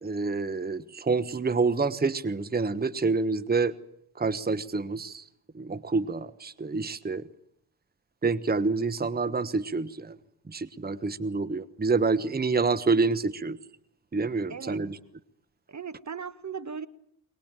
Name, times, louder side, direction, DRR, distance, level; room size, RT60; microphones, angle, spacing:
voice 1, 0.0-3.7 4.2-5.2 5.5-7.3 8.2-10.2 10.5-13.6 14.1-15.0, right 4 dB, 20° right, 1.2 m, -27 dB
voice 2, 14.5-14.9 15.7-16.9, right 6 dB, 35° right, 1.3 m, -37 dB
23.0 x 20.5 x 9.1 m
supercardioid pair, 65°, 48 cm